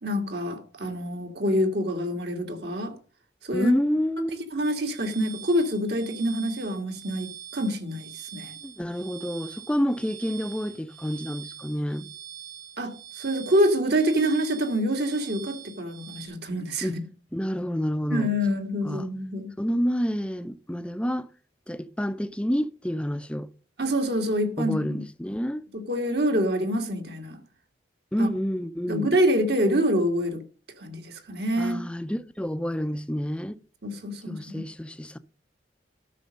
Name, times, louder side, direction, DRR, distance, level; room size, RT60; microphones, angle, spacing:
voice 1, 0.0-2.9 3.4-3.7 4.5-8.5 12.8-17.0 18.1-19.5 23.8-25.0 25.7-27.4 28.2-28.3 28.9-30.4 30.8-31.9 33.8-34.6, equal, 65° right, 2.0 m, -26 dB
voice 2, 3.5-4.3 8.6-12.1 16.8-17.0 17.3-18.3 18.8-19.1 19.6-21.3 21.7-23.5 24.6-25.6 28.1-29.1 31.6-33.6 34.3-35.2, equal, 5° left, 0.5 m, -28 dB
sound 1, 4.6-16.3, right 9 dB, 85° right, 3.4 m, -44 dB
13.0 x 6.4 x 5.3 m
head